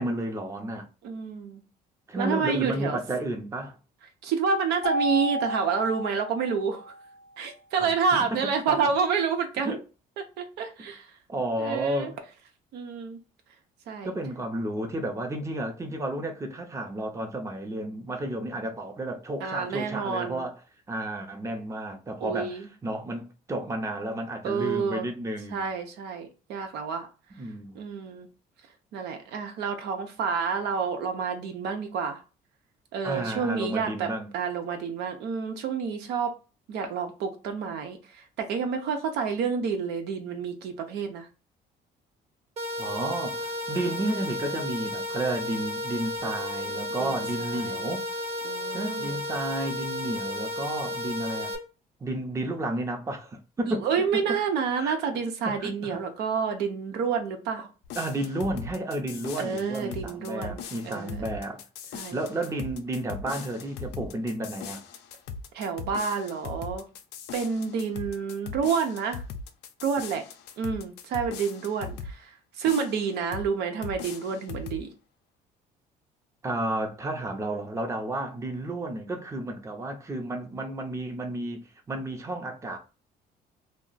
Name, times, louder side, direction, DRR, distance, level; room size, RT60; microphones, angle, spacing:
voice 1, 0.0-0.9 2.1-3.8 7.8-7.9 8.3-8.4 8.7-8.8 9.6-9.8 11.3-12.2 14.0-20.6 20.9-25.7 27.4-27.8 33.0-34.3 42.8-48.1 48.7-51.5 52.0-53.8 54.7-55.0 55.4-56.0 58.0-61.6 62.1-64.8 76.4-82.8, right 1 dB, 15° right, 0.5 m, -32 dB
voice 2, 1.0-1.6 2.2-3.0 4.2-6.9 7.4-9.8 10.2-11.1 11.6-12.1 12.7-13.2 13.9-14.2 19.4-20.5 22.2-22.7 24.4-25.1 25.5-27.1 27.8-28.3 28.9-32.2 32.9-36.3 36.7-38.0 38.4-41.3 47.0-47.9 48.4-49.2 53.6-57.7 59.4-61.4 61.9-62.2 65.5-66.8 67.3-69.2 69.8-70.2 70.6-72.3 72.6-74.9, right 6 dB, 80° right, 0.7 m, -29 dB
Mallet percussion, 4.8-7.1, equal, 50° left, 0.7 m, -31 dB
sound 1, 42.6-51.6, left 1 dB, 40° right, 0.9 m, -33 dB
sound 2, 57.8-72.2 72.6-73.5 73.8-74.9, left 5 dB, 85° left, 0.5 m, -40 dB
2.4 x 2.0 x 3.9 m
cardioid pair, 110°, 17 cm